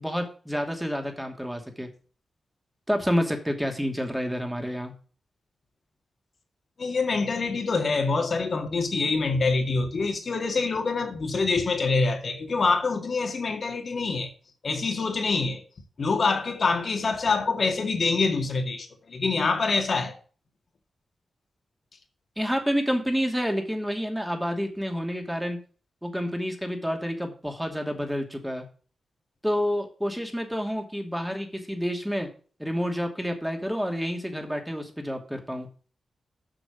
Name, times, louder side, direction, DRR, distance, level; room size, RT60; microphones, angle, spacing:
voice 1, 0.0-1.9 2.9-4.9 22.4-25.6 26.0-28.7 29.4-32.3 32.6-35.7, equal, 5° right, 2.5 m, -29 dB
voice 2, 6.8-14.3 14.6-15.6 16.0-20.2, left 4 dB, 60° left, 2.1 m, -25 dB
7.9 x 6.1 x 7.1 m
cardioid pair, 55°, 0 cm